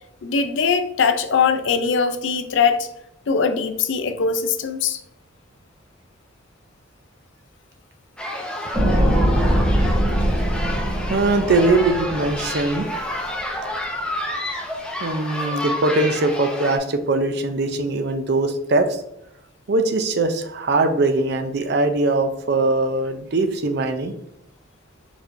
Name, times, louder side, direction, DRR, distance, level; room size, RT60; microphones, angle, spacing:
voice 1, 0.2-2.9 3.3-5.0, left 5 dB, 70° left, 9 dB, 0.5 m, -21 dB
sound 1, 8.2-16.8, left 1 dB, 5° left, 0.5 m, -29 dB
sound 2, 8.7-13.0 13.3-13.4, equal, 15° right, 1.1 m, -21 dB
voice 2, 11.1-12.9 15.0-19.0 19.7-24.1, right 2 dB, 55° right, 8 dB, 0.5 m, -21 dB
4.3 x 4.3 x 2.6 m, 0.80 s
head